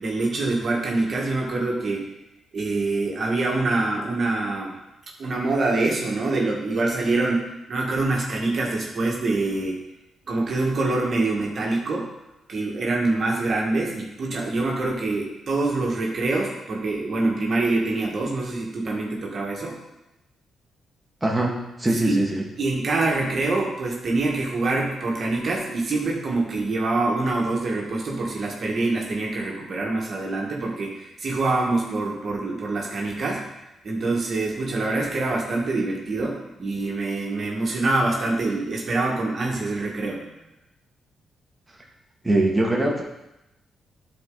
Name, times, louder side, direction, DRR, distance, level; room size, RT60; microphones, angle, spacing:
voice 1, 0.0-2.1 2.5-4.8 5.2-9.8 10.3-12.1 12.5-19.8 22.0-22.2 22.6-33.5 33.8-40.2, right 2 dB, 55° right, -2 dB, 1.7 m, -25 dB
voice 2, 21.2-22.4 42.2-43.0, right 1 dB, 15° right, -1 dB, 1.8 m, -22 dB
10.5 x 4.5 x 4.0 m, 0.92 s
supercardioid pair, 55°, 0 cm